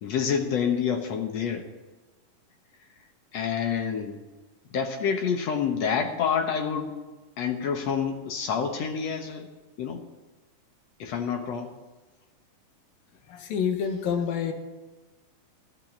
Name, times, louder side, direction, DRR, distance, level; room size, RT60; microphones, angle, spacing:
voice 1, 0.0-1.7 3.3-4.2 4.7-7.0 7.4-9.5 9.8-10.0 11.0-11.7, left 7 dB, 60° left, 5 dB, 1.9 m, -28 dB
voice 2, 13.3-14.5, left 7 dB, 80° left, 5 dB, 3.2 m, -27 dB
15.5 x 9.0 x 8.6 m, 1.2 s
omnidirectional pair, 4.0 m